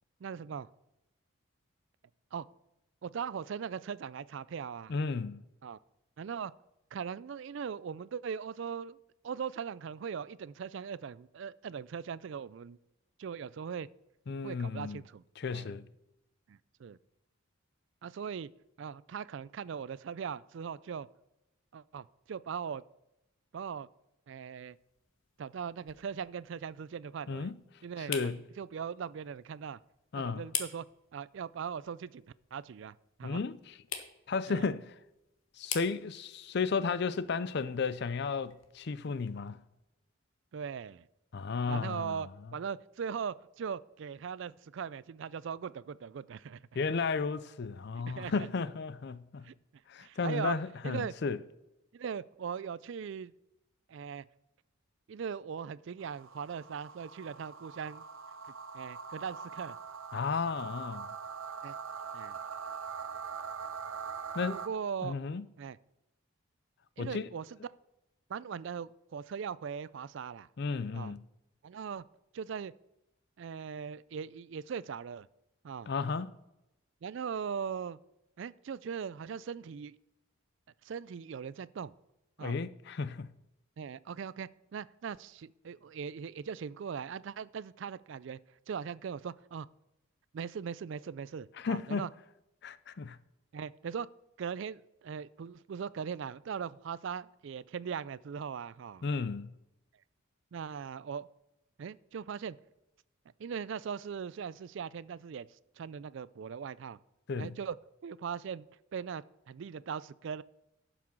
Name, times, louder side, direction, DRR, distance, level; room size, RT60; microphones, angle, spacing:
voice 1, 0.2-0.7 2.3-2.5 3.0-4.9 5.6-5.8 6.2-6.5 6.9-9.0 9.2-12.8 13.2-13.9 14.4-15.2 15.5-15.7 16.5-17.0 18.0-18.5 18.8-21.1 21.7-22.8 23.5-23.9 24.3-24.8 25.4-27.5 27.8-29.8 30.1-30.8 31.1-32.2 32.5-33.4 34.5-34.6 40.5-41.1 41.7-46.6 48.1-48.5 49.4-49.5 50.0-50.6 50.8-51.1 51.9-53.3 53.9-54.2 55.1-58.0 58.7-59.8 61.6-61.8 62.1-62.4 64.4-65.2 65.6-65.8 67.0-67.5 68.3-70.5 70.9-71.2 71.6-72.0 72.3-72.7 73.4-75.3 75.6-75.9 77.0-78.0 78.4-80.0 80.8-81.9 82.4-82.6 83.8-88.4 88.7-89.7 90.3-92.1 93.5-94.1 94.4-99.0 100.5-101.3 101.8-102.6 103.4-105.5 105.8-107.0 107.4-107.8 108.0-108.7 108.9-110.4, right 7 dB, 60° right, 0.3 m, -40 dB
voice 2, 4.9-5.4 14.3-15.0 15.4-15.9 27.3-27.6 28.1-28.4 30.1-30.4 33.2-33.8 34.3-34.9 35.6-39.6 41.3-42.3 46.7-49.5 49.9-51.4 60.1-61.2 64.3-64.6 65.0-65.5 67.0-67.3 70.6-71.2 75.9-76.3 82.4-83.3 91.6-92.0 92.6-93.2 99.0-99.5 107.3-107.5, left 4 dB, 50° left, 0.4 m, -33 dB
sound 1, 24.5-39.3, left 8 dB, 75° left, 1.3 m, -47 dB
sound 2, 56.0-64.7, right 6 dB, 75° right, 0.8 m, -42 dB
11.5 x 6.0 x 6.3 m
head